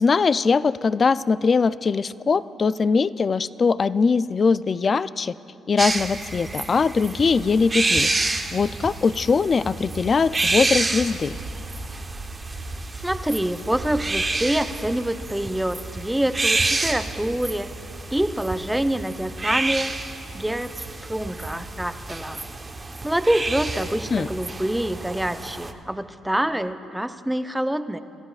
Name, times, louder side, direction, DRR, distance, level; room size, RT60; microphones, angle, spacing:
voice 1, 0.0-5.3 5.7-8.1 8.5-11.4 24.1-24.3, left 5 dB, 40° left, 16 dB, 0.3 m, -21 dB
sound 1, 5.8-25.7, right 3 dB, 25° right, 0.9 m, -29 dB
voice 2, 13.0-17.7 18.1-20.0 20.3-22.4 23.0-28.0, right 1 dB, 5° right, 9 dB, 0.6 m, -26 dB
28.5 x 14.0 x 2.4 m, 2.6 s
cardioid pair, 90°, 0 cm